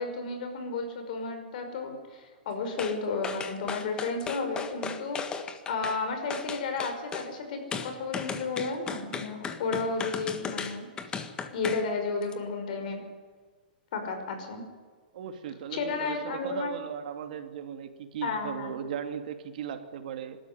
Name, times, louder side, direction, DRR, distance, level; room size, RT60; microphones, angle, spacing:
voice 1, 0.0-5.2 5.7-10.9 11.5-13.0 13.9-14.6 15.7-16.8 18.2-18.8, left 4 dB, 60° left, 6 dB, 5.6 m, -32 dB
Deck the Halls, 2.8-3.0 3.2-6.0 6.3-7.3 7.7-11.9 12.2-12.3, left 5 dB, 15° left, 1.6 m, -36 dB
voice 2, 15.1-20.4, right 8 dB, 60° right, 7 dB, 2.6 m, -37 dB
24.5 x 13.0 x 9.8 m, 1.5 s
hypercardioid pair, 145°, 5 cm